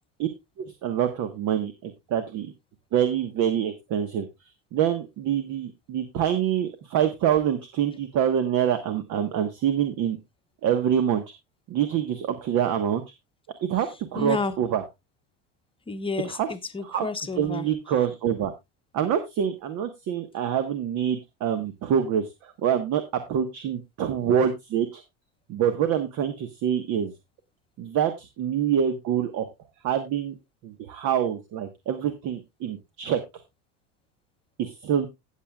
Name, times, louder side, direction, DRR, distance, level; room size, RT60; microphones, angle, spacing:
voice 1, 0.6-2.5 2.9-4.3 4.7-10.2 10.6-11.2 11.7-13.0 13.6-14.8 16.2-16.5 16.8-17.1 17.4-18.5 18.9-23.0 23.3-25.0 25.5-27.1 27.8-29.5 29.8-30.4 30.6-33.2 34.6-35.1, right 9 dB, 50° right, 9 dB, 1.3 m, -26 dB
voice 2, 14.1-14.5 15.9-17.7, left 3 dB, 15° left, 8 dB, 1.0 m, -30 dB
17.0 x 7.7 x 2.3 m, 0.21 s
supercardioid pair, 125°, 37 cm